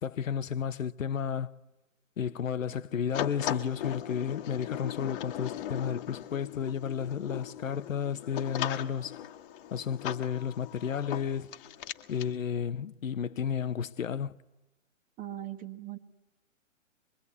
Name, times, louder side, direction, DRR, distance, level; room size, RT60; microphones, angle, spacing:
voice 1, 0.0-1.6 2.2-9.2 9.7-11.5 12.1-14.3, left 7 dB, 80° left, 1.0 m, -32 dB
sound 1, 3.1-12.3, left 11 dB, 40° left, 1.4 m, -39 dB
voice 2, 15.2-16.0, right 13 dB, 20° right, 1.5 m, -39 dB
25.0 x 22.0 x 9.6 m
hypercardioid pair, 135°, 39 cm